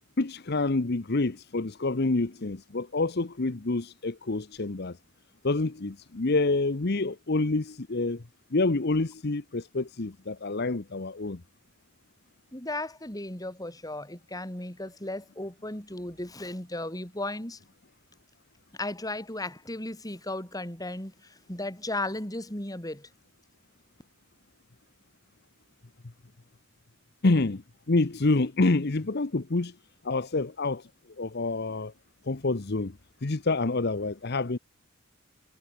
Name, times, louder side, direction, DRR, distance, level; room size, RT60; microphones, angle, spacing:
voice 1, 0.2-5.0 5.4-8.2 8.5-11.4 27.2-29.7 30.0-30.9 31.2-31.9 32.3-34.6, left 3 dB, 50° left, 0.9 m, -27 dB
voice 2, 12.5-17.6 18.7-23.1, left 1 dB, 20° left, 4.2 m, -35 dB
head